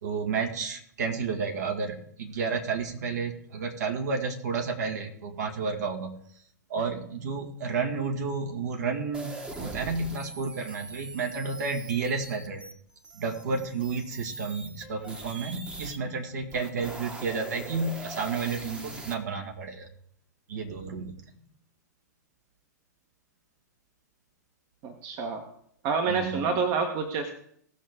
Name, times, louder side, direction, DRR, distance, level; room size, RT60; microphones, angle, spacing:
voice 1, 0.0-6.2 6.7-12.6 13.2-19.9 20.5-21.2 26.1-26.4, right 4 dB, 65° right, 2 dB, 2.2 m, -31 dB
sound 1, 9.1-16.0 16.4-19.1, right 2 dB, 10° right, 1.2 m, -42 dB
voice 2, 24.8-25.4 25.8-27.3, right 5 dB, 40° right, 6 dB, 1.4 m, -28 dB
18.5 x 6.5 x 3.7 m, 0.67 s
figure-of-eight pair, 105°, 10 cm